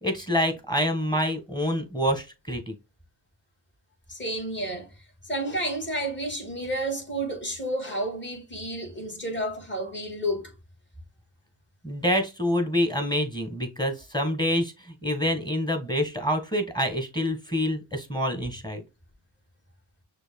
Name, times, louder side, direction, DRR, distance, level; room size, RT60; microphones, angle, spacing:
voice 1, 0.0-2.7 11.8-14.7 15.0-18.8, equal, 10° left, 1.7 m, -26 dB
voice 2, 4.1-4.9 5.3-10.5, right 1 dB, 30° left, 2.2 m, -31 dB
6.2 x 2.6 x 2.3 m
cardioid pair, 55°, 38 cm